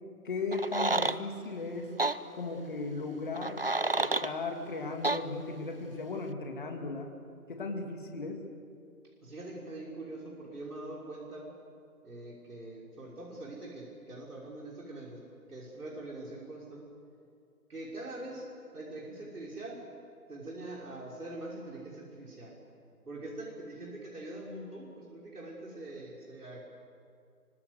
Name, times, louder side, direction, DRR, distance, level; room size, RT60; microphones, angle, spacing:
voice 1, 0.2-1.9 2.3-3.6 4.0-7.1 7.5-8.4, left 3 dB, 30° left, 3 dB, 2.6 m, -36 dB
sound 1, 0.5-1.2 2.0-2.2 3.3-4.3 5.0-5.2, right 2 dB, 40° right, 0.6 m, -29 dB
voice 2, 9.2-11.5 12.0-15.2 15.5-16.9 17.7-19.8 20.3-22.6 23.1-26.6, right 2 dB, 70° right, -3 dB, 5.9 m, -43 dB
25.5 x 25.0 x 8.1 m, 2.4 s
figure-of-eight pair, 170°, 46 cm